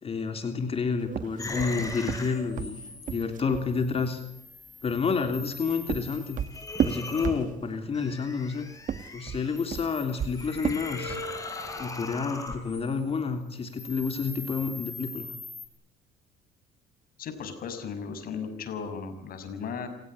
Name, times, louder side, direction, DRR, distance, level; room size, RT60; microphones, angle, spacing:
voice 1, 0.0-2.8 3.1-4.2 4.8-6.4 6.8-8.7 9.1-11.2 11.8-15.3, left 5 dB, 35° left, 7 dB, 3.3 m, -29 dB
sound 1, 1.1-3.7 5.4-7.8 8.7-11.3, right 8 dB, 50° right, 1.3 m, -33 dB
sound 2, 1.4-13.2 13.4-15.7, left 3 dB, 20° left, 5.6 m, -40 dB
voice 2, 17.2-19.9, left 6 dB, 60° left, 8 dB, 6.0 m, -36 dB
28.5 x 16.5 x 9.8 m, 0.76 s
cardioid pair, 110°, 17 cm